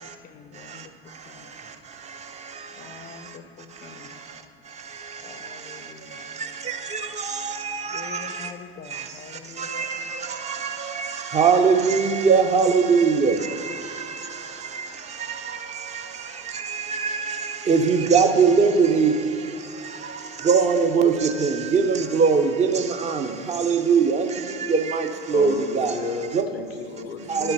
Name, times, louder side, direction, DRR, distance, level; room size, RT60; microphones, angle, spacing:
voice 1, 0.0-0.9 1.3-1.6 2.8-4.2 5.2-6.2 7.9-9.9, left 6 dB, 25° left, 0.6 m, -44 dB
voice 2, 0.5-3.4 3.7-8.5 8.8-26.0 26.3-26.4 27.3-27.5, right 5 dB, 20° right, 0.7 m, -24 dB
voice 3, 25.3-27.5, left 5 dB, 65° left, 0.7 m, -33 dB
11.5 x 5.6 x 5.3 m
figure-of-eight pair, 75°, 32 cm